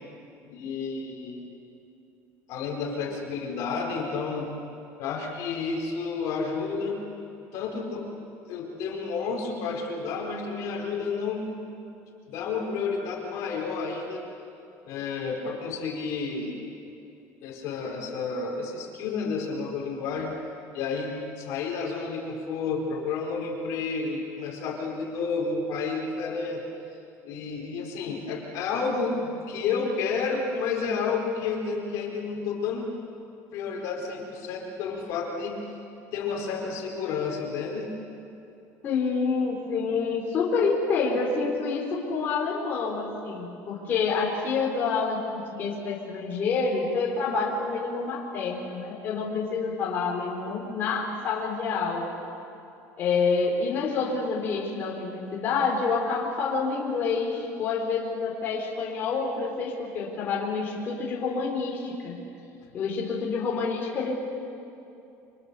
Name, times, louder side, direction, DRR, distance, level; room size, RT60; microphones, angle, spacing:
voice 1, 0.4-1.5 2.5-4.6 5.0-7.0 7.5-8.1 8.5-11.5 12.3-14.2 14.9-16.9 17.4-20.4 20.7-26.6 27.2-32.9 33.5-35.6 36.1-38.0, left 4 dB, 50° left, 0 dB, 4.4 m, -31 dB
voice 2, 38.8-52.1 53.0-62.2 62.7-64.3, left 4 dB, 30° left, -3 dB, 3.9 m, -28 dB
28.5 x 26.0 x 6.9 m, 2.7 s
cardioid pair, 180°, 7 cm